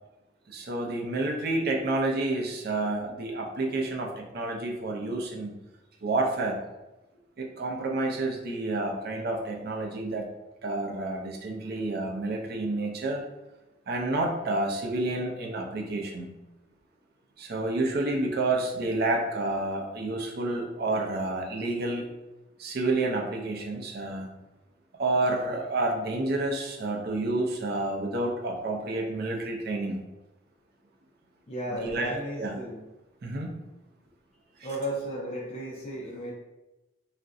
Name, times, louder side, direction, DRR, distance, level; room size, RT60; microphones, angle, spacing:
voice 1, 0.5-5.6 6.0-6.6 7.4-10.3 10.6-13.2 13.9-16.3 17.4-22.1 22.6-24.3 25.0-30.0 31.8-32.6 33.2-33.6, right 2 dB, 55° right, 1 dB, 0.5 m, -29 dB
voice 2, 31.5-32.8 34.6-36.3, equal, 35° left, -4 dB, 0.4 m, -34 dB
2.4 x 2.1 x 3.6 m, 1.0 s
head